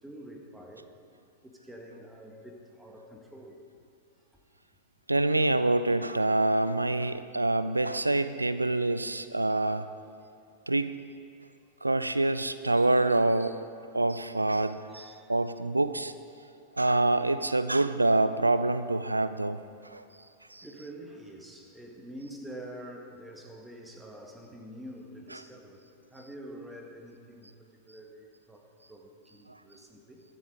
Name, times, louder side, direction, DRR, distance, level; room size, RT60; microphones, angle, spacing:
voice 1, 0.0-0.9 1.4-3.6 14.9-15.3 20.6-27.5 27.8-30.2, right 1 dB, 5° right, 1 dB, 1.9 m, -46 dB
voice 2, 5.1-9.9 10.7-10.9 11.8-13.6 13.9-16.1 16.7-20.0 20.5-20.6, right 2 dB, 85° right, 12 dB, 0.5 m, -26 dB
22.0 x 7.8 x 4.9 m, 2.7 s
figure-of-eight pair, 90°, 0 cm